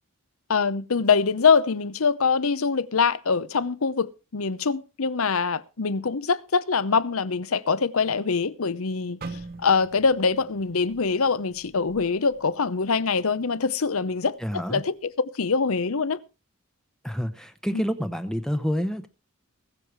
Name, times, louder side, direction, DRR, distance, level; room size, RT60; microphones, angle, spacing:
voice 1, 0.5-9.2 9.6-15.1 15.3-16.2 17.7-17.8, left 5 dB, 70° left, 0.8 m, -24 dB
sound 1, 9.2-13.2 13.6-13.9 14.5-14.8, right 3 dB, 45° right, 1.0 m, -44 dB
voice 2, 14.4-14.8 17.0-19.1, equal, 5° left, 0.7 m, -28 dB
20.0 x 7.4 x 4.7 m
head